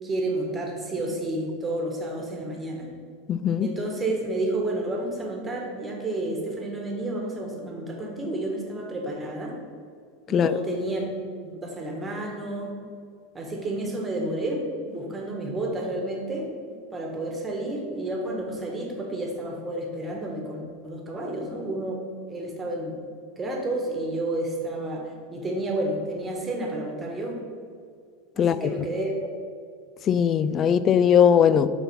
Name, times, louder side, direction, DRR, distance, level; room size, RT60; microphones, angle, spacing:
voice 1, 0.0-2.9 3.6-9.6 10.3-11.1 11.4-12.8 13.3-22.0 22.3-23.0 23.4-27.4 28.3-29.3, right 1 dB, 20° right, 0 dB, 1.5 m, -30 dB
voice 2, 3.3-3.7 10.3-10.5 28.4-28.7 30.1-31.7, left 8 dB, 35° left, 14 dB, 0.3 m, -19 dB
5.6 x 4.2 x 5.8 m, 2.2 s
hypercardioid pair, 85°, 0 cm